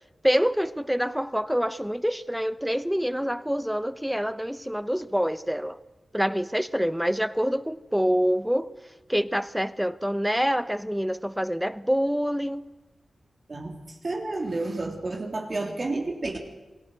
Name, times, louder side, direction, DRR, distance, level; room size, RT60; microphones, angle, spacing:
voice 1, 0.2-5.8 6.1-8.7 9.1-12.7, equal, ahead, 16 dB, 0.8 m, -26 dB
voice 2, 14.0-16.4, right 2 dB, 40° right, 2 dB, 3.1 m, -30 dB
27.0 x 21.5 x 6.6 m, 1.1 s
wide cardioid pair, 125°, 0 cm